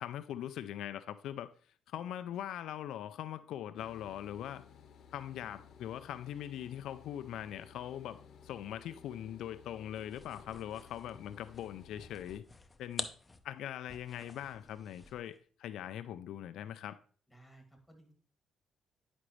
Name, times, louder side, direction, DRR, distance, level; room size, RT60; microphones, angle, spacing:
voice 1, 0.0-1.5 1.9-4.6 5.1-12.4 12.8-13.1 13.4-17.0, left 11 dB, 80° left, 0.3 m, -41 dB
sound 1, 3.8-12.4, left 6 dB, 65° left, 0.8 m, -57 dB
sound 2, 9.9-15.3, left 3 dB, 20° left, 0.7 m, -47 dB
voice 2, 17.3-18.1, right 1 dB, ahead, 2.3 m, -59 dB
9.8 x 5.0 x 3.1 m
cardioid pair, 90°, 0 cm